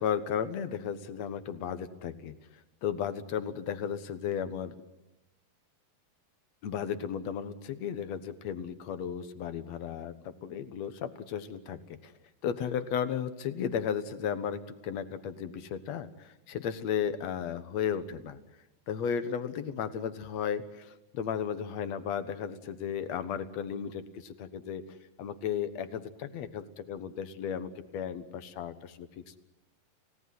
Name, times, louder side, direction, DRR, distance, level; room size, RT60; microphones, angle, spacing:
voice 1, 0.0-2.3 2.8-4.8 6.6-12.1 12.4-18.4 18.9-24.8 25.2-29.1, left 8 dB, 60° left, 12 dB, 2.1 m, -34 dB
29.5 x 17.5 x 9.5 m, 0.94 s
omnidirectional pair, 4.1 m